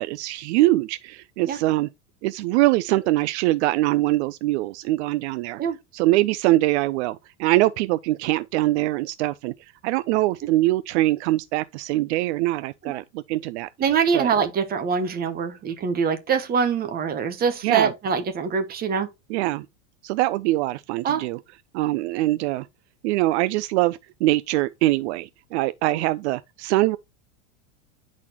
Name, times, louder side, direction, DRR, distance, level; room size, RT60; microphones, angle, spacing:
voice 1, 0.0-1.9 2.2-5.6 5.9-9.5 9.8-13.7 14.1-14.3 17.6-17.9 19.3-19.7 20.0-21.4 21.7-22.7 23.0-27.0, right 17 dB, 65° right, 0.5 m, -23 dB
voice 2, 13.8-19.1 21.0-21.3, right 6 dB, 25° right, 1.1 m, -24 dB
9.7 x 4.2 x 2.9 m
supercardioid pair, 135°, 37 cm